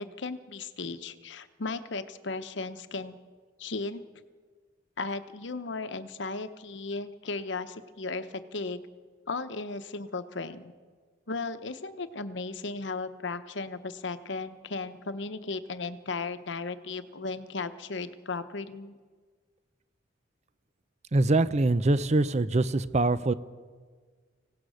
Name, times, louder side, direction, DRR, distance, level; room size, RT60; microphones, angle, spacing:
voice 1, 0.0-3.2 3.6-4.0 5.0-8.8 9.3-10.7 11.3-18.9, left 3 dB, 60° left, 11 dB, 1.0 m, -36 dB
voice 2, 21.1-23.3, right 2 dB, 35° right, 15 dB, 0.6 m, -24 dB
25.0 x 17.0 x 6.4 m, 1.6 s
head